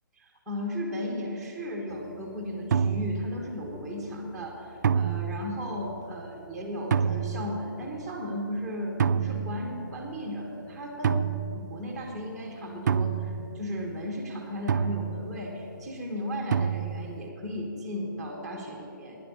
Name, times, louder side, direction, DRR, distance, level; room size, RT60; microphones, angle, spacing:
voice 1, 0.2-11.2 11.5-19.2, equal, ahead, -2 dB, 1.3 m, -35 dB
sound 1, 1.9-2.2 2.7-3.6 4.8-5.8 6.9-7.7 9.0-10.2 11.0-12.2 12.9-14.1 14.7-15.6 16.5-17.3, right 7 dB, 55° right, 0.4 m, -29 dB
10.0 x 8.7 x 8.5 m, 2.9 s
hypercardioid pair, 165°, 11 cm